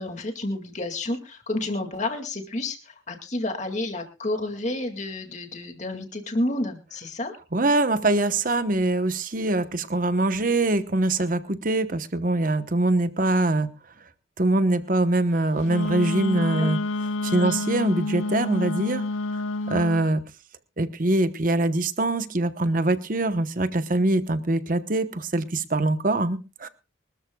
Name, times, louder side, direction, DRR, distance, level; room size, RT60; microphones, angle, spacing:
voice 1, 0.0-7.3 16.3-16.8 17.3-17.6, left 1 dB, 35° left, 5 dB, 2.2 m, -30 dB
voice 2, 7.5-13.7 14.4-16.8 17.2-19.0 19.7-20.2 20.8-26.7, right 2 dB, 45° right, 11 dB, 1.0 m, -23 dB
Wind instrument woodwind instrument, 15.7-20.1, left 2 dB, 85° left, 0.7 m, -28 dB
24.5 x 13.0 x 2.3 m, 0.30 s
head